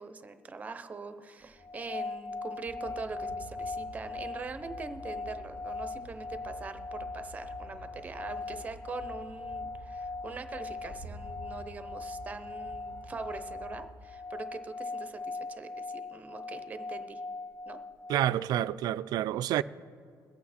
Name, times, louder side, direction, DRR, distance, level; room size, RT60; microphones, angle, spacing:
voice 1, 0.0-17.2 17.7-17.8, right 4 dB, 20° right, 0.7 m, -43 dB
sound 1, 1.6-18.8, left 3 dB, 15° left, 0.6 m, -40 dB
sound 2, 2.7-13.9, left 1 dB, 55° left, 2.2 m, -49 dB
voice 2, 18.1-19.6, right 12 dB, 60° right, 0.3 m, -28 dB
22.0 x 8.3 x 4.2 m
cardioid pair, 165°, 8 cm